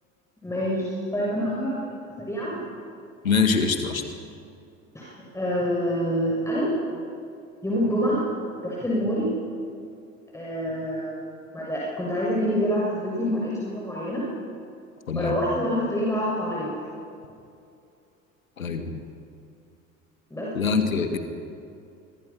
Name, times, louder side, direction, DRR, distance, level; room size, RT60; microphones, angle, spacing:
voice 1, 0.4-2.6 4.9-6.7 7.6-8.2 8.6-9.3 10.3-11.2 11.5-14.2 15.1-16.7 20.3-20.5, equal, 5° left, -6 dB, 6.8 m, -26 dB
voice 2, 3.2-4.0 15.1-15.4 18.6-19.0 20.5-21.2, left 5 dB, 80° left, 7 dB, 2.0 m, -24 dB
26.0 x 24.0 x 5.8 m, 2.5 s
figure-of-eight pair, 65°, 40 cm